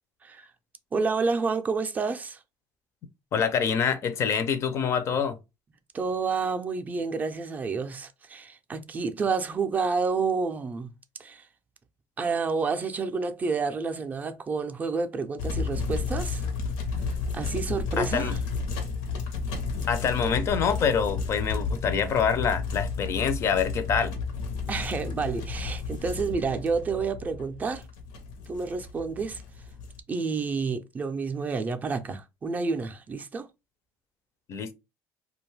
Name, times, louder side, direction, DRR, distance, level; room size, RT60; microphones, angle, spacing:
voice 1, 0.9-2.4 5.9-10.9 11.2-11.5 12.2-16.5 17.3-18.4 24.7-27.8 28.5-29.4 30.1-33.5, right 4 dB, 25° right, 0.4 m, -29 dB
voice 2, 3.3-5.4 18.0-18.3 19.9-24.1 34.5-34.7, left 7 dB, 45° left, 0.4 m, -26 dB
sound 1, 15.4-30.0, left 4 dB, 80° left, 0.7 m, -32 dB
2.5 x 2.2 x 3.1 m
cardioid pair, 120°, 7 cm